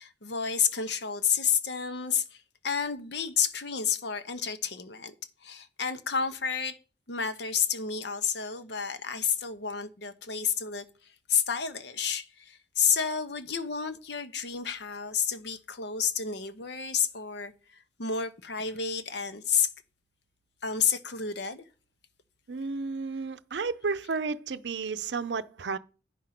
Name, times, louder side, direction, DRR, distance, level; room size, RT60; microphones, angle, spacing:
voice 1, 0.0-5.1 5.4-6.8 7.1-10.8 11.3-19.7 20.6-21.6, left 7 dB, 70° left, 0.9 m, -30 dB
voice 2, 22.5-25.8, right 4 dB, 75° right, 0.6 m, -32 dB
10.0 x 5.1 x 5.8 m
head